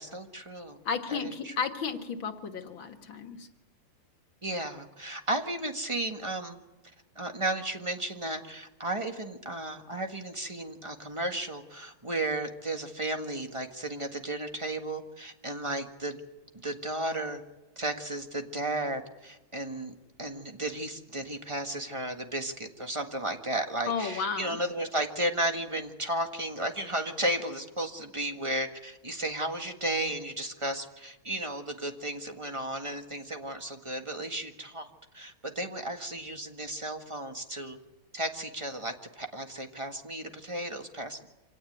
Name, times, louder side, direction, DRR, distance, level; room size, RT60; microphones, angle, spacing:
voice 1, 0.0-0.8 1.1-1.5 4.4-6.6 7.1-16.2 16.6-17.4 17.8-34.9 35.1-37.8 38.1-41.3, right 1 dB, 15° right, 5 dB, 1.6 m, -34 dB
voice 2, 0.9-3.5 23.9-24.6, left 6 dB, 75° left, 5 dB, 2.4 m, -33 dB
26.0 x 17.5 x 9.4 m, 1.0 s
omnidirectional pair, 2.2 m